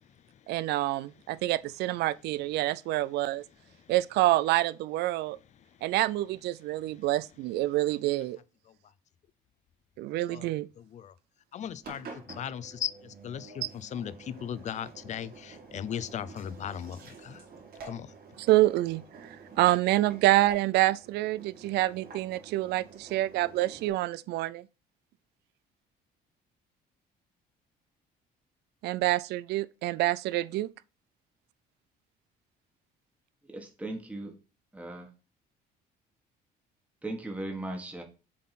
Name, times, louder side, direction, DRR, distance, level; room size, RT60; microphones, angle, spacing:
voice 1, 0.5-3.4 3.9-5.4 5.8-8.4 10.0-10.7 13.6-13.7 18.4-24.7 28.8-30.7, right 16 dB, 80° right, 0.4 m, -27 dB
voice 2, 11.5-17.4 17.8-18.1, left 9 dB, 45° left, 0.5 m, -37 dB
Engine, 11.8-23.9, right 4 dB, 60° right, 2.6 m, -49 dB
voice 3, 33.4-34.3 34.7-35.1 37.0-38.0, right 2 dB, 10° right, 1.5 m, -37 dB
7.6 x 3.8 x 4.1 m
cardioid pair, 110°, 17 cm